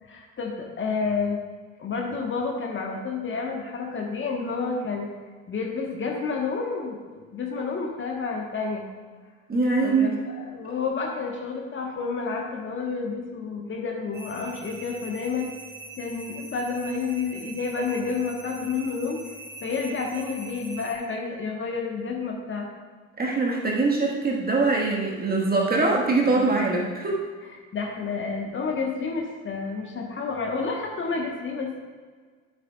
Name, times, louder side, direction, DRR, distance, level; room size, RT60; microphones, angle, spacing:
voice 1, 0.1-1.4 1.8-5.1 5.5-8.9 9.8-15.5 16.0-19.2 19.6-22.7 25.9-26.0 26.3-26.6 27.7-31.8, left 4 dB, 30° left, 1 dB, 1.4 m, -30 dB
voice 2, 9.5-10.2 23.2-27.2, right 3 dB, 25° right, -1 dB, 1.7 m, -23 dB
sound 1, 14.1-21.0, right 2 dB, 5° right, 2.7 m, -42 dB
13.0 x 7.4 x 2.4 m, 1.5 s
figure-of-eight pair, 60°, 39 cm